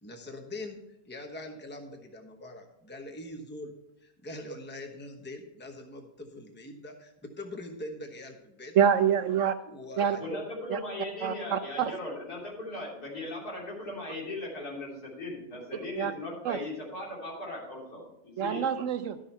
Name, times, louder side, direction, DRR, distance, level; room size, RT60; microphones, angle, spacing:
voice 1, 0.0-0.8 1.1-3.7 4.0-8.7 9.7-10.5, left 1 dB, 10° left, 4 dB, 0.9 m, -42 dB
voice 2, 8.7-9.5 10.0-10.2 10.7-10.8 11.2-11.9 15.7-16.1 16.4-16.6 18.4-19.2, right 8 dB, 70° right, 10 dB, 0.8 m, -26 dB
voice 3, 10.2-18.7, left 1 dB, 85° left, -4 dB, 3.7 m, -38 dB
12.0 x 6.5 x 4.4 m, 0.84 s
omnidirectional pair, 1.6 m